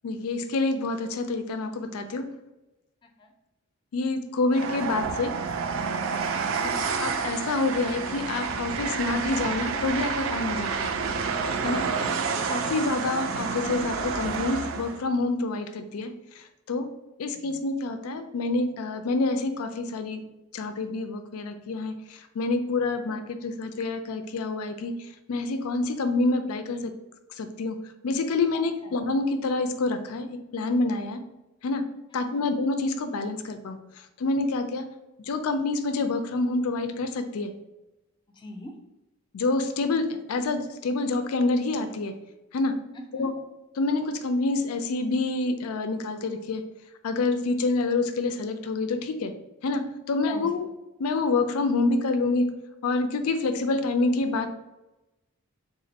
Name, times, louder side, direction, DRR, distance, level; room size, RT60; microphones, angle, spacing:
voice 1, 0.0-2.3 3.9-5.3 6.6-10.9 11.6-11.8 12.5-16.9 17.2-20.2 20.5-24.9 25.3-26.9 27.4-27.8 28.0-31.2 31.6-31.9 32.1-33.8 34.2-34.9 35.3-37.5 39.3-42.2 42.5-42.7 43.1-43.3 43.8-46.6 47.0-49.3 49.6-50.7 51.0-52.5 52.8-54.5, left 3 dB, 90° left, 9 dB, 0.4 m, -27 dB
Train, 4.5-15.0, right 5 dB, 65° right, 0.4 m, -29 dB
voice 2, 6.3-6.7 11.7-12.9 17.3-17.5 28.8-29.0 32.3-32.5 38.3-38.7 43.2-43.3 50.3-50.5, left 1 dB, 20° left, 4 dB, 0.4 m, -42 dB
3.6 x 2.5 x 4.0 m, 0.98 s
head